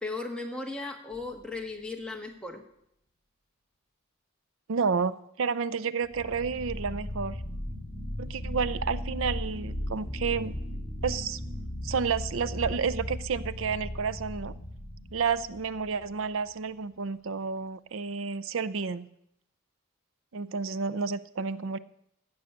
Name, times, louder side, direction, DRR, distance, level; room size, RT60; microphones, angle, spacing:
voice 1, 0.0-2.6, left 3 dB, 5° left, 1 dB, 1.4 m, -36 dB
sound 1, 1.1-1.7 6.0-16.2, left 1 dB, 35° left, 3.5 m, -37 dB
voice 2, 4.7-7.4 8.2-10.5 11.0-11.4 11.8-14.5 15.1-19.1 20.3-21.8, right 5 dB, 65° right, 14 dB, 0.6 m, -30 dB
14.5 x 6.3 x 8.5 m, 0.75 s
head